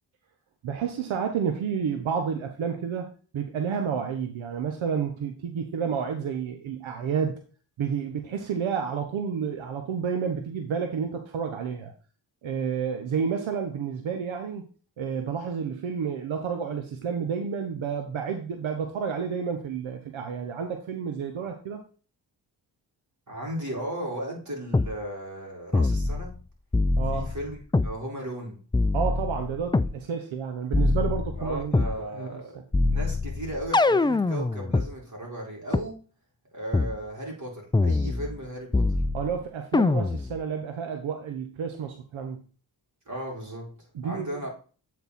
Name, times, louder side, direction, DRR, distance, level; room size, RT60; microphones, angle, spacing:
voice 1, 0.6-7.3 7.8-11.9 12.4-14.7 15.0-21.8 27.0-27.3 28.9-31.9 32.2-32.3 39.1-42.4 43.9-44.4, right 6 dB, 85° right, 1.0 m, -30 dB
voice 2, 23.3-26.3 27.1-28.6 31.3-32.6 32.9-36.0 36.5-38.9 43.1-44.5, right 1 dB, 40° right, 4.3 m, -36 dB
sound 1, 24.7-24.9 25.7-26.4 26.7-27.9 28.7-29.9 30.7-32.0 32.7-34.9 35.7-35.8 36.7-37.0 37.7-38.4 38.7-39.4 39.7-40.4, left 2 dB, 10° left, 0.4 m, -24 dB
8.3 x 4.4 x 4.1 m
cardioid pair, 45°, 46 cm